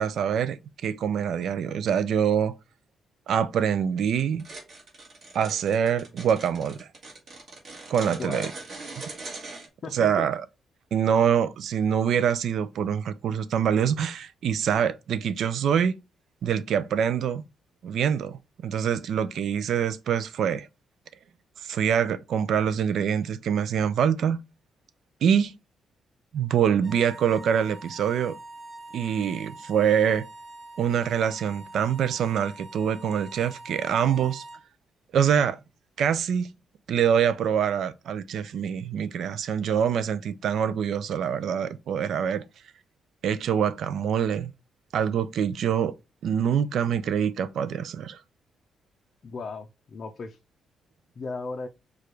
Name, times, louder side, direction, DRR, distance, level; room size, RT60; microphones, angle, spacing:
voice 1, 0.0-2.5 3.3-4.5 5.3-6.9 7.9-8.5 9.9-10.4 10.9-16.0 16.4-17.4 17.8-20.7 21.6-24.4 25.2-25.6 26.3-28.4 28.9-30.3 30.8-34.4 35.1-35.6 36.0-36.5 36.9-42.4 43.2-44.5 44.9-45.9 46.2-48.2, right 8 dB, 60° right, 0.4 m, -25 dB
sound 1, 4.4-9.7, right 3 dB, 40° right, 1.5 m, -41 dB
voice 2, 8.2-8.5 9.8-10.3 49.2-50.4 51.2-51.7, left 4 dB, 40° left, 0.5 m, -36 dB
sound 2, 26.8-34.7, right 2 dB, 15° right, 1.0 m, -44 dB
4.8 x 2.4 x 4.5 m
cardioid pair, 150°, 0 cm